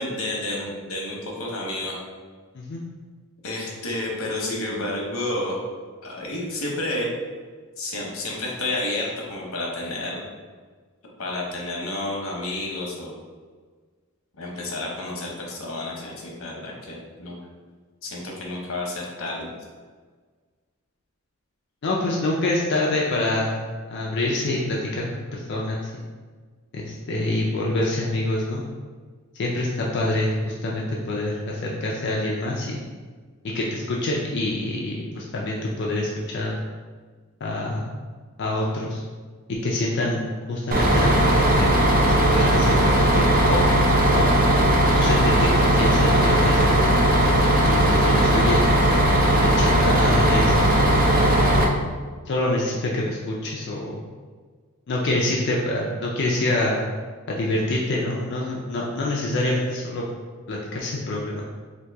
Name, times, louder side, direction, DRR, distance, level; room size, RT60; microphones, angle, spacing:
voice 1, 0.0-1.9 3.4-5.6 6.0-7.1 7.8-10.2 11.2-13.1 14.4-17.4 18.0-19.5, left 2 dB, 75° left, -2 dB, 0.8 m, -30 dB
voice 2, 21.8-23.6 23.9-25.9 26.7-28.6 29.4-32.9 33.5-36.6 37.4-37.9 38.4-39.0 39.6-40.2 40.5-41.7 42.3-43.6 44.1-44.2 44.9-48.6 49.4-51.4 52.3-54.0 54.9-56.8 57.3-60.0 60.5-61.4, left 1 dB, 55° left, -3 dB, 0.4 m, -26 dB
Bus, 40.7-51.6, right 1 dB, 40° right, 0.4 m, -18 dB
2.9 x 2.7 x 3.4 m, 1.5 s
head